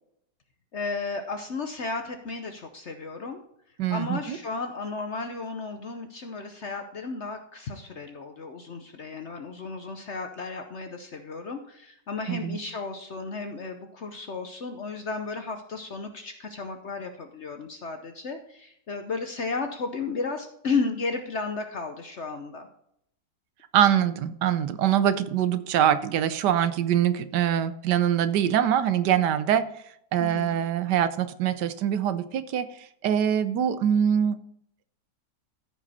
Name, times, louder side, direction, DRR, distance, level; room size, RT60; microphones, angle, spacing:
voice 1, 0.7-3.4 3.9-22.7 30.2-30.6, left 4 dB, 50° left, 6 dB, 0.9 m, -33 dB
voice 2, 3.8-4.4 12.3-12.6 23.7-29.7 30.1-32.7 33.0-34.4, right 9 dB, 75° right, 12 dB, 1.2 m, -23 dB
14.0 x 5.4 x 4.2 m, 0.73 s
omnidirectional pair, 1.9 m